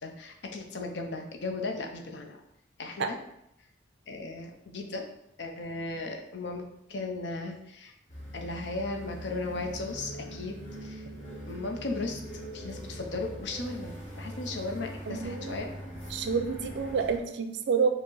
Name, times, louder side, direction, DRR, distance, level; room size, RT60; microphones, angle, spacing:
voice 1, 0.0-2.4 2.8-3.2 4.1-5.1 5.4-7.9 8.3-11.1 11.5-12.2 12.5-15.7, left 3 dB, 60° left, 3 dB, 0.5 m, -36 dB
sound 1, 8.1-17.2, equal, 35° left, 1.2 m, -42 dB
voice 2, 15.1-15.6 16.1-17.9, right 5 dB, 55° right, 7 dB, 0.4 m, -28 dB
4.8 x 2.0 x 3.8 m, 0.79 s
head